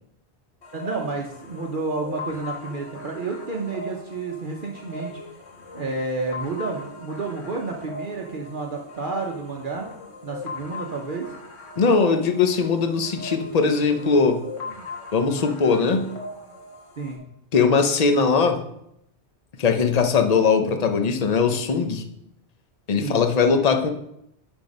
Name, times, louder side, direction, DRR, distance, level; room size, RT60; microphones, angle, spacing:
sound 1, 0.6-17.2, left 2 dB, 80° left, 1.6 m, -39 dB
voice 1, 0.7-5.2 5.7-9.9 10.2-11.3 14.7-14.9 17.0-17.2 23.0-23.2 23.5-23.8, right 3 dB, 50° right, 0 dB, 0.9 m, -30 dB
voice 2, 11.8-14.4 15.1-16.1 17.5-18.6 19.6-22.0 22.9-23.9, left 5 dB, 40° left, 7 dB, 0.7 m, -20 dB
10.0 x 3.6 x 5.3 m, 0.78 s
omnidirectional pair, 1.1 m